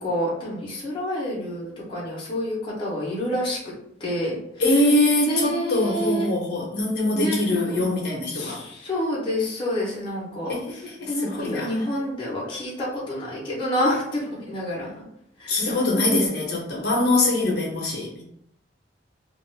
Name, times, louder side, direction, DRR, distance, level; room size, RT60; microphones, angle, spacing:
voice 1, 0.0-3.6 4.0-4.4 5.2-6.3 7.1-8.0 8.3-15.0 15.4-15.7 16.1-16.3, left 1 dB, 25° left, -5 dB, 0.7 m, -28 dB
voice 2, 4.6-8.6 10.5-11.7 15.5-18.2, left 2 dB, 60° left, -3 dB, 0.7 m, -23 dB
2.4 x 2.3 x 3.2 m, 0.73 s
head